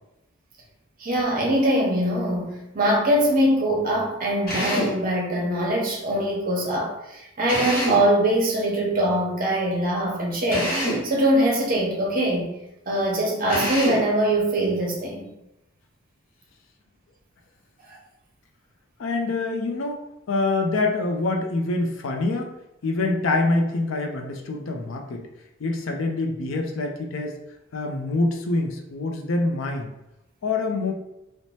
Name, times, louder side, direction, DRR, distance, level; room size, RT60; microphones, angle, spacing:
voice 1, 1.0-10.7 11.0-12.5 12.9-15.3 17.9-18.0, right 1 dB, 40° right, -2 dB, 0.7 m, -22 dB
Drill, 4.5-5.0 7.5-8.1 10.5-11.1 13.5-14.1, equal, 45° left, 1.0 m, -26 dB
voice 2, 19.0-20.0 20.3-22.6 22.8-25.2 25.6-27.3 27.7-29.9 30.4-30.9, left 2 dB, 65° left, 2 dB, 0.4 m, -25 dB
2.7 x 2.1 x 3.1 m, 0.87 s
head